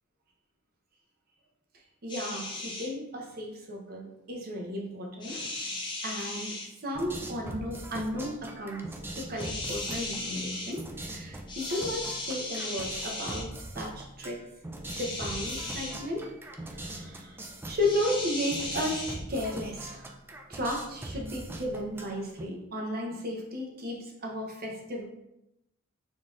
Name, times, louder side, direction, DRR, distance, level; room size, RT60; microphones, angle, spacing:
voice 1, 2.0-13.5 13.8-14.4 15.0-16.3 16.6-17.4 17.7-20.1 20.5-25.0, left 1 dB, 50° right, 0 dB, 0.8 m, -34 dB
sound 1, 2.1-2.9 5.2-6.7 9.4-10.7 11.5-13.4 14.8-16.0 17.8-19.2, left 2 dB, 20° left, 0.7 m, -36 dB
sound 2, 6.9-22.4, right 1 dB, 10° right, 0.3 m, -42 dB
3.9 x 3.7 x 2.4 m, 0.86 s
head